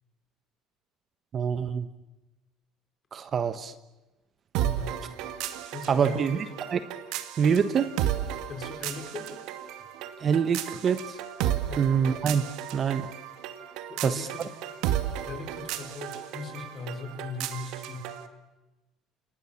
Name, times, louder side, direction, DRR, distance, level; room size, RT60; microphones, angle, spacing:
voice 1, 1.3-1.9 3.1-3.7 5.9-6.4 6.7-6.8 7.4-7.9 10.2-11.2 11.8-12.4 12.7-13.1 14.0-14.3, right 7 dB, 35° right, 12 dB, 1.2 m, -25 dB
sound 1, 4.5-18.3, right 11 dB, 70° right, 2.4 m, -34 dB
voice 2, 4.6-4.9 5.7-6.3 8.4-9.3 11.7-11.8 13.9-14.5 15.2-18.1, left 4 dB, 30° left, 5 dB, 5.3 m, -39 dB
29.5 x 28.0 x 7.3 m, 1.1 s
cardioid pair, 140°, 0 cm